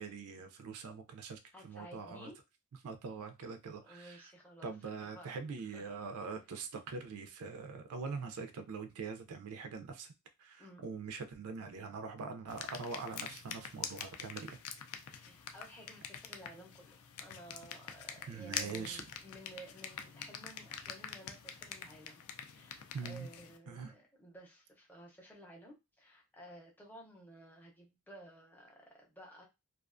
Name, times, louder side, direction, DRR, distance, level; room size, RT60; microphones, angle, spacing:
voice 1, 0.0-2.3 2.8-4.2 4.6-10.1 10.4-14.6 18.3-19.0 22.9-23.3 23.7-23.9, right 5 dB, 75° right, 7 dB, 0.4 m, -43 dB
voice 2, 1.5-2.4 3.8-5.3 5.7-5.8 10.6-10.8 15.1-29.4, right 1 dB, 10° left, -1 dB, 0.5 m, -54 dB
sound 1, 12.5-23.6, left 8 dB, 75° left, 0.4 m, -45 dB
2.4 x 2.2 x 2.4 m, 0.24 s
head